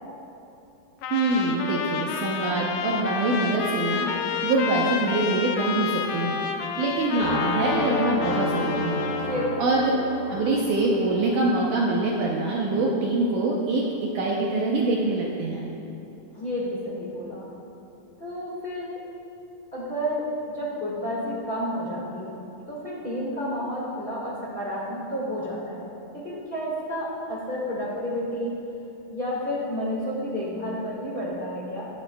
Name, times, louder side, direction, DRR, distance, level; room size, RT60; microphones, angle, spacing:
Trumpet, 1.0-9.6, left 6 dB, 80° left, 2.3 m, -30 dB
voice 1, 1.1-4.1 4.4-6.4 6.8-9.1 9.6-9.9 10.3-13.8 14.1-15.7, right 2 dB, 75° right, -3 dB, 1.9 m, -24 dB
sound 1, 7.2-13.1, left 3 dB, 60° left, 2.8 m, -31 dB
voice 2, 9.0-9.7 16.3-17.5 18.2-18.9 19.7-22.4 22.7-25.9 26.1-28.6 29.1-31.9, equal, 30° left, -7 dB, 0.9 m, -31 dB
15.5 x 11.0 x 2.3 m, 2.9 s
omnidirectional pair, 4.4 m